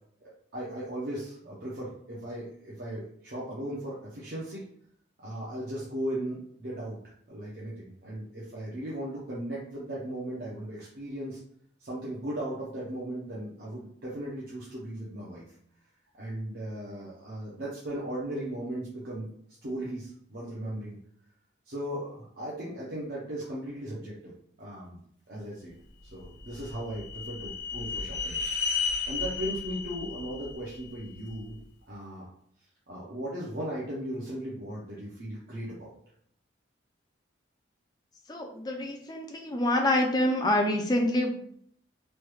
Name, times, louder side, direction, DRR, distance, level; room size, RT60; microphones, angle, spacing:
voice 1, 0.2-4.6 5.2-7.0 7.3-11.4 11.8-15.4 16.2-19.3 19.6-21.0 21.7-24.3 24.6-25.0 25.3-25.7 26.1-28.4 28.8-31.6 31.9-32.3 32.9-35.9, right 1 dB, 55° right, -6 dB, 0.6 m, -37 dB
sound 1, 26.2-31.4, left 5 dB, 70° left, 0.6 m, -34 dB
voice 2, 38.3-41.5, left 1 dB, 20° left, 3 dB, 0.4 m, -27 dB
3.2 x 2.2 x 3.1 m, 0.65 s
head